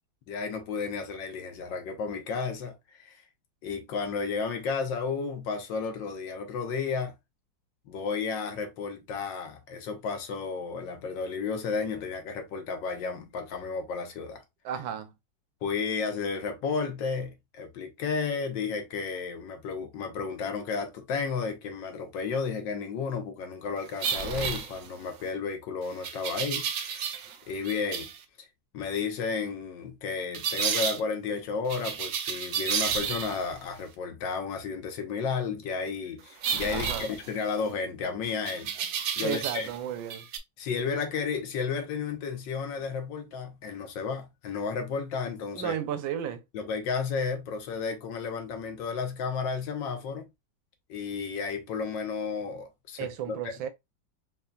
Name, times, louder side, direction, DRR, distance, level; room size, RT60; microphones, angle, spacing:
voice 1, 0.3-3.2 3.6-7.1 7.9-14.4 15.6-27.2 27.5-28.1 28.7-38.7 39.2-39.7 40.6-45.8 46.5-50.3 50.9-53.5, left 5 dB, 75° left, 1.5 m, -32 dB
voice 2, 14.6-15.1 36.7-37.1 39.2-40.3 45.5-46.4 53.0-53.7, right 9 dB, 90° right, 1.4 m, -33 dB
sound 1, 24.0-25.2 26.0-27.4 27.6-28.2 30.3-31.0 31.7-33.5 36.4-37.7 38.4-39.8 40.0-40.4, right 7 dB, 70° right, 0.8 m, -31 dB
4.1 x 3.3 x 2.3 m
omnidirectional pair, 2.0 m